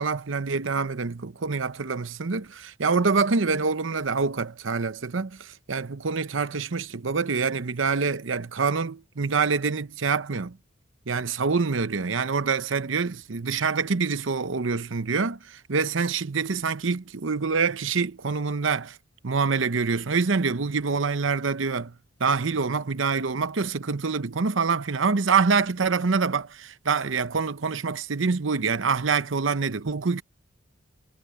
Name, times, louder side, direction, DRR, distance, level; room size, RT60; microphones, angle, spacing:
voice 1, 0.0-10.6 11.1-19.0 19.2-21.9 22.2-30.2, right 4 dB, 75° right, 0.8 m, -26 dB
head